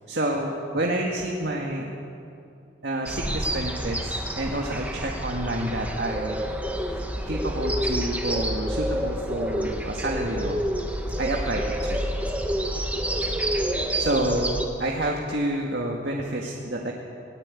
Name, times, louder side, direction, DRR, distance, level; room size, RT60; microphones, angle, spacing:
voice 1, 0.1-1.9 2.8-6.4 6.9-7.0 7.3-10.6 11.2-12.0 14.0-16.9, right 1 dB, 65° right, 0 dB, 1.9 m, -28 dB
sound 1, 3.1-14.7, equal, 10° right, 1.7 m, -28 dB
21.0 x 18.5 x 8.4 m, 2.6 s
head